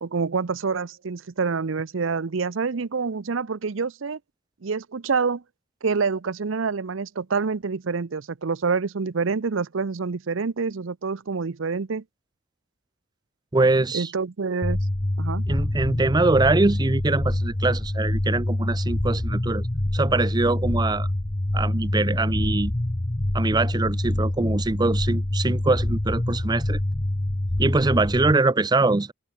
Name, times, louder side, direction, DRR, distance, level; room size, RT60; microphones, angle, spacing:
voice 1, 0.0-4.2 4.6-5.4 5.8-12.0 13.9-14.8 15.2-15.5, right 5 dB, 75° right, 0.6 m, -27 dB
voice 2, 13.5-14.1 15.5-19.7 19.9-21.1 21.5-22.7 23.3-26.8 27.6-29.1, right 2 dB, 20° right, 0.5 m, -23 dB
sound 1, 14.6-28.3, left 1 dB, 25° left, 0.9 m, -25 dB
open air
head